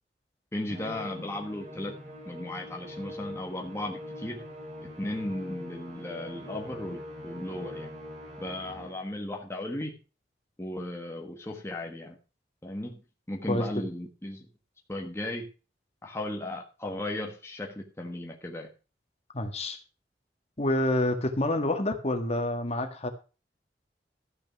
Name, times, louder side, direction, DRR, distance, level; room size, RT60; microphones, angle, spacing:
voice 1, 0.5-1.9 2.2-4.4 5.0-7.9 8.4-9.9 10.6-12.2 12.6-13.0 13.3-14.5 14.9-15.5 16.0-18.7, left 1 dB, 15° left, 1 dB, 1.4 m, -36 dB
Musical instrument, 0.7-9.2, left 1 dB, 45° right, 3.3 m, -42 dB
voice 2, 19.3-19.8 20.6-23.1, left 1 dB, 35° left, 6 dB, 1.7 m, -28 dB
13.5 x 6.3 x 6.1 m, 0.34 s
head